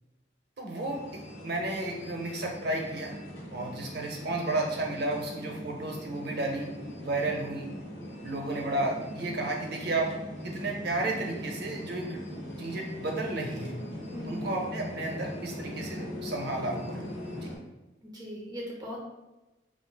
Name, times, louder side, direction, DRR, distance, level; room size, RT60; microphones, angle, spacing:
voice 1, 0.6-3.1 3.5-6.7 7.0-7.7 8.2-10.1 10.4-12.2 12.6-13.7 14.3-17.0 17.4-17.5, right 2 dB, 60° right, 1 dB, 0.7 m, -32 dB
sound 1, 0.8-17.6, equal, 75° left, 1.0 m, -40 dB
voice 2, 14.1-14.5 18.0-19.0, equal, 20° right, -2 dB, 0.7 m, -39 dB
4.5 x 2.5 x 2.2 m, 1.0 s
head